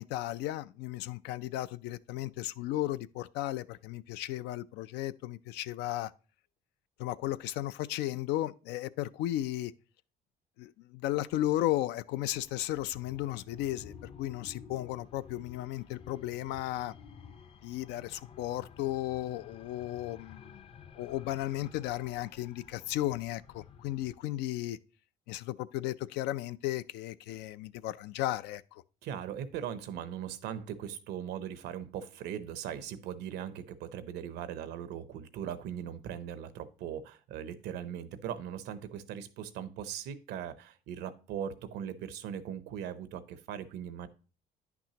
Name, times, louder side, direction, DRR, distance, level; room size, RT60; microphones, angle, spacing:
voice 1, 0.0-6.1 7.0-9.7 10.6-16.9 17.6-20.7 20.9-24.8 25.3-28.8, left 14 dB, 85° left, 0.4 m, -35 dB
sound 1, 12.2-24.2, left 6 dB, 35° left, 0.5 m, -52 dB
voice 2, 29.0-44.1, right 9 dB, 85° right, 0.7 m, -39 dB
9.9 x 6.0 x 2.9 m
cardioid pair, 110°, 17 cm